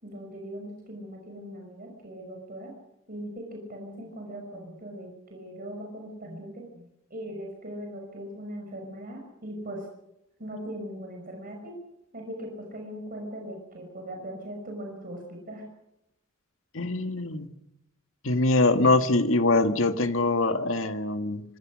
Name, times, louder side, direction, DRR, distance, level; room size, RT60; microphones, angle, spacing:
voice 1, 0.0-2.7 3.1-9.9 10.4-11.7 12.1-15.7, equal, 45° right, 1 dB, 5.9 m, -40 dB
voice 2, 16.7-17.5 18.2-21.4, left 2 dB, 70° left, 7 dB, 1.9 m, -23 dB
26.0 x 24.5 x 6.4 m, 0.86 s
head